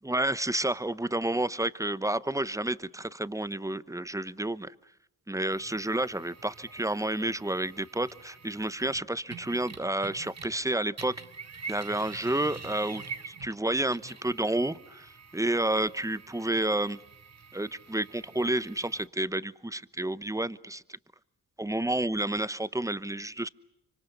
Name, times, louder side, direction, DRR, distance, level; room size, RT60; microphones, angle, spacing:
voice 1, 0.0-4.7 5.3-11.2 11.7-17.0 17.5-20.8 21.6-23.5, right 1 dB, 10° right, 0.9 m, -30 dB
sound 1, 5.5-10.7 10.9-19.1, right 5 dB, 45° right, 1.7 m, -46 dB
25.0 x 25.0 x 6.8 m
supercardioid pair, 45°, 37 cm